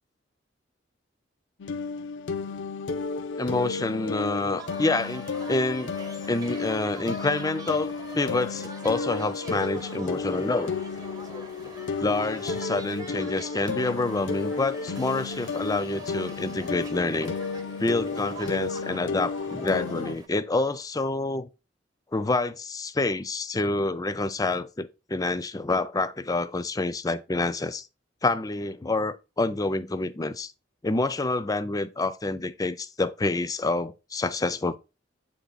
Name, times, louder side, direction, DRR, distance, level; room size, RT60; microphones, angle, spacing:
sound 1, 1.6-20.1, left 4 dB, 80° left, 0.5 m, -33 dB
voice 1, 3.4-5.9 6.3-10.7 12.0-17.3 17.8-21.5 22.1-27.9 28.2-30.5 30.8-34.8, left 2 dB, 20° left, 0.4 m, -27 dB
sound 2, 4.6-20.3, right 3 dB, 20° right, 0.8 m, -44 dB
8.2 x 3.2 x 4.0 m
head